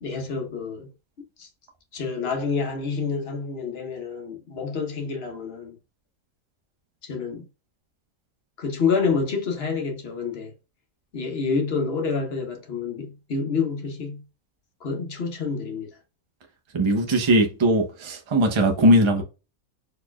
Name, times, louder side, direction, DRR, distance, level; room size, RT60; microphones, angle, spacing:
voice 1, 0.0-0.9 1.4-1.5 1.9-5.8 7.0-7.4 8.6-10.5 11.1-14.2 14.8-15.9, left 5 dB, 50° left, 1.1 m, -28 dB
voice 2, 16.7-19.2, right 1 dB, 30° right, 0.6 m, -19 dB
4.2 x 3.2 x 2.2 m
omnidirectional pair, 1.5 m